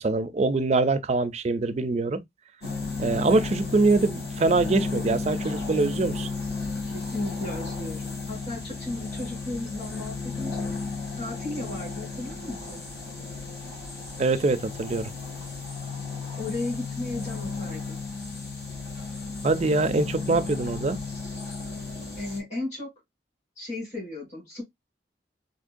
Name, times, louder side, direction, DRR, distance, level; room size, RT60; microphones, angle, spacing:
voice 1, 0.0-2.2 3.0-6.3 14.2-15.1 19.4-21.0, right 3 dB, 40° right, 0.4 m, -24 dB
sound 1, 2.6-22.4, left 4 dB, 70° left, 2.4 m, -34 dB
voice 2, 6.9-10.7 11.2-12.8 16.4-18.0 22.2-22.9 23.6-24.6, left 2 dB, 40° left, 2.1 m, -35 dB
3.7 x 2.8 x 2.4 m
head